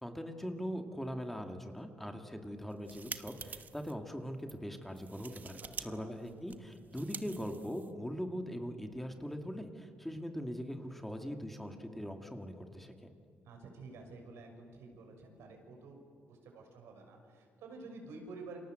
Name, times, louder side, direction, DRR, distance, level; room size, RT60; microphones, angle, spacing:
voice 1, 0.0-13.1, equal, 5° left, 5 dB, 2.3 m, -41 dB
sound 1, 2.6-3.9 4.4-4.6 5.0-5.9 6.1-8.1, right 6 dB, 40° right, 1.2 m, -47 dB
voice 2, 5.8-6.1 13.4-16.0 16.3-18.6, right 3 dB, 85° right, 3 dB, 6.3 m, -50 dB
29.0 x 26.5 x 7.9 m, 2.3 s
cardioid pair, 115°, 4 cm